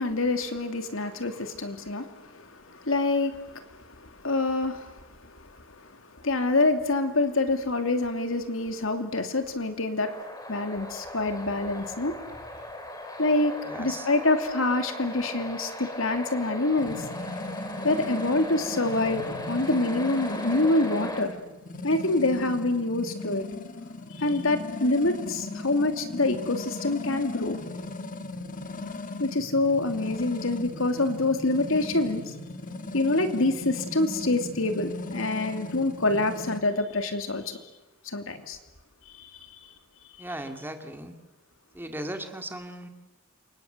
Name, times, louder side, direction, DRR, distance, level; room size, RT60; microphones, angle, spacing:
voice 1, 0.0-5.6 6.2-10.2 10.5-12.1 13.2-13.5 13.8-16.9 17.8-21.3 21.8-23.5 24.2-27.6 29.2-32.3 32.9-37.6 38.1-38.6 39.1-39.3, left 2 dB, 75° left, 7 dB, 2.8 m, -26 dB
sound 1, 10.0-21.2, left 1 dB, 20° left, 3.2 m, -37 dB
voice 2, 13.6-14.1 40.2-41.1 41.7-42.9, right 1 dB, 10° right, 6 dB, 2.2 m, -37 dB
sound 2, 16.8-36.6, left 2 dB, 40° left, 1.8 m, -38 dB
28.5 x 25.5 x 8.0 m, 1.1 s
head